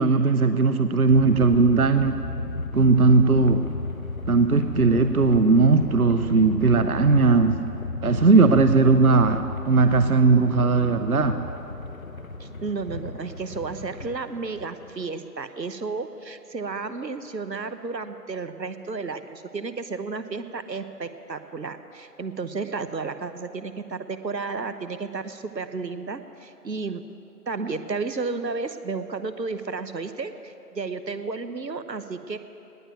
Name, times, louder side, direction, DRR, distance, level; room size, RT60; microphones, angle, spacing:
voice 1, 0.0-2.2 2.7-3.7 4.3-7.6 8.0-11.5, right 4 dB, 60° right, 10 dB, 0.7 m, -18 dB
sound 1, 1.1-15.0, left 3 dB, 55° left, 1.0 m, -34 dB
voice 2, 12.4-27.0 27.5-32.4, right 4 dB, 90° right, 11 dB, 1.1 m, -32 dB
18.5 x 7.0 x 9.1 m, 3.0 s
figure-of-eight pair, 175°, 49 cm